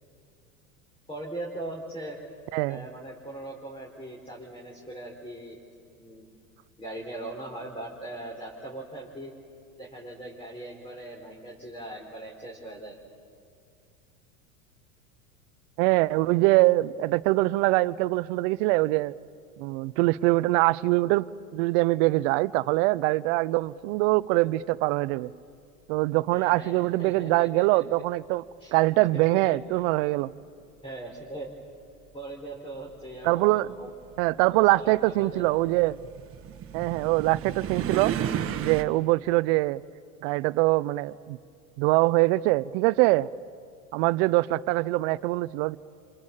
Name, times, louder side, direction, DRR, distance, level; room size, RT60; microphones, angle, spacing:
voice 1, 1.1-2.2 2.6-5.6 6.0-6.3 6.8-9.3 9.8-13.0 26.3-27.8 28.6-28.7 29.1-29.4 30.8-31.5 32.1-33.9 34.5-35.4, right 1 dB, 15° left, 4.5 m, -40 dB
voice 2, 2.5-2.8 15.8-19.1 19.6-21.3 21.5-25.3 25.9-28.4 28.7-30.3 33.2-33.7 34.2-36.0 36.7-38.1 38.6-39.8 40.2-41.4 41.8-43.3 43.9-45.8, right 20 dB, 55° right, 0.7 m, -23 dB
sound 1, 31.6-31.7 32.7-38.8, right 9 dB, 30° right, 1.6 m, -34 dB
28.0 x 26.5 x 7.4 m
hypercardioid pair, 95°, 41 cm